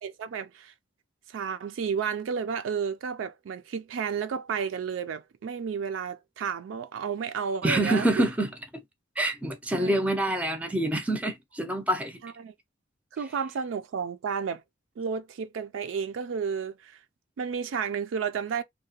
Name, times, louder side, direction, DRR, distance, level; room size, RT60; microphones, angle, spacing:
voice 1, 0.0-0.7 1.3-8.3 9.7-9.9 12.2-12.5 13.1-14.6 15.0-17.0 17.4-18.6, right 6 dB, 75° right, 0.4 m, -32 dB
voice 2, 7.6-8.5 9.2-12.2, right 1 dB, 5° right, 0.4 m, -26 dB
2.8 x 2.1 x 2.7 m
head